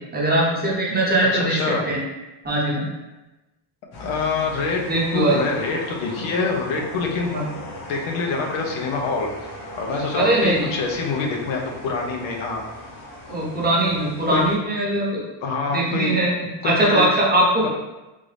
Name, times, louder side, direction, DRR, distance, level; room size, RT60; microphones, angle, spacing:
voice 1, 0.1-1.6 1.9-2.0 2.4-2.9 4.9-5.4 7.3-7.5 10.1-10.7 13.3-15.2 15.7-16.3 16.6-17.7, right 1 dB, 20° right, -4 dB, 0.8 m, -20 dB
voice 2, 1.3-1.9 4.0-4.8 5.1-7.3 7.9-9.3 9.8-12.7 14.3-14.4 15.4-16.2 16.6-17.2 17.6-17.7, left 4 dB, 80° left, 1 dB, 0.8 m, -25 dB
sound 1, 3.9-14.6, left 1 dB, 55° left, 0.9 m, -38 dB
3.6 x 2.5 x 3.2 m, 1.1 s
cardioid pair, 125°, 47 cm